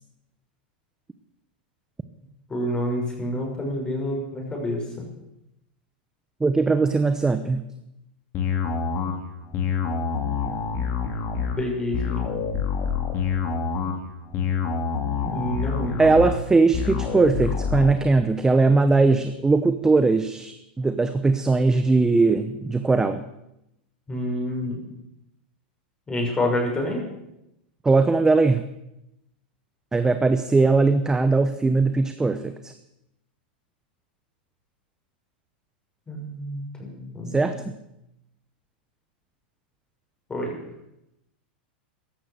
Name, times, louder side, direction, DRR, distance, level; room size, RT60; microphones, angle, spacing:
voice 1, 2.5-5.0 11.6-12.3 15.2-16.0 24.1-24.8 26.1-27.0 36.1-37.5 40.3-40.5, left 1 dB, 15° left, 0 dB, 6.3 m, -28 dB
voice 2, 6.4-7.6 16.0-23.2 27.8-28.6 29.9-32.7 37.3-37.6, right 3 dB, 10° right, 10 dB, 0.9 m, -20 dB
sound 1, 8.3-17.9, left 6 dB, 40° left, 2.9 m, -27 dB
14.5 x 11.5 x 8.2 m, 0.86 s
hypercardioid pair, 120°, 5 cm